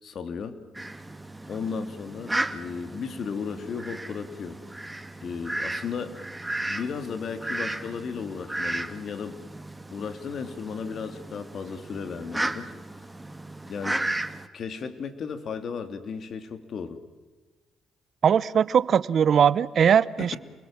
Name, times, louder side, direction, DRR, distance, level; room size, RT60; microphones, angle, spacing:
voice 1, 0.0-0.6 1.5-4.6 5.2-6.2 6.6-9.4 9.9-12.7 13.7-14.0 14.5-17.0 20.2-20.4, left 6 dB, 55° left, 9 dB, 2.7 m, -35 dB
Fowl, 0.7-14.5, right 1 dB, 10° right, 1.6 m, -34 dB
voice 2, 18.2-20.4, right 8 dB, 55° right, 19 dB, 0.9 m, -20 dB
28.5 x 21.5 x 7.5 m, 1.3 s
cardioid pair, 90°, 0 cm